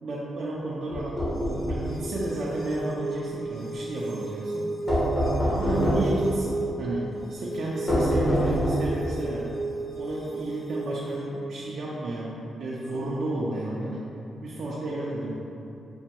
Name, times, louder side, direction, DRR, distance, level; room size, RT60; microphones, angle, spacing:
voice 1, 0.0-1.3 1.7-4.8 5.5-9.5 9.9-14.0 14.4-15.3, right 2 dB, 70° right, -6 dB, 0.5 m, -32 dB
sound 1, 0.9-1.9 4.9-6.2 7.9-9.0, equal, 40° left, 1.2 m, -25 dB
sound 2, 1.3-11.3, right 3 dB, 55° left, 1.5 m, -35 dB
6.2 x 2.2 x 2.8 m, 2.9 s
cardioid pair, 75°, 0 cm